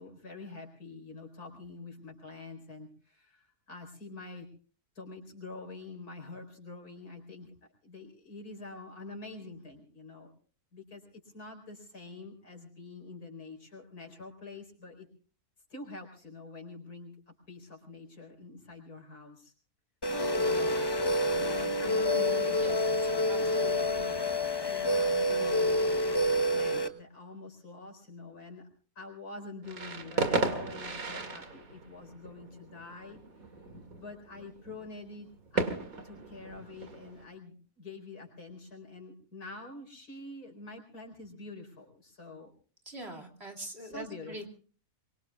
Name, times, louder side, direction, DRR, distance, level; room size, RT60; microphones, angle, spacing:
voice 1, 0.0-4.5 4.9-7.5 7.8-10.3 10.7-15.1 15.7-19.5 20.4-20.8 21.3-24.2 24.7-28.7 28.9-33.7 34.0-35.8 36.0-42.5 43.8-44.5, left 3 dB, 90° left, 3 dB, 4.9 m, -46 dB
sound 1, 20.0-26.9, left 1 dB, 20° left, 0.8 m, -28 dB
voice 2, 23.3-23.7 42.9-44.5, right 1 dB, 45° right, 1 dB, 2.9 m, -43 dB
sound 2, 29.6-37.2, right 3 dB, 70° right, 2.5 m, -36 dB
24.5 x 23.5 x 2.4 m, 0.41 s
omnidirectional pair, 1.6 m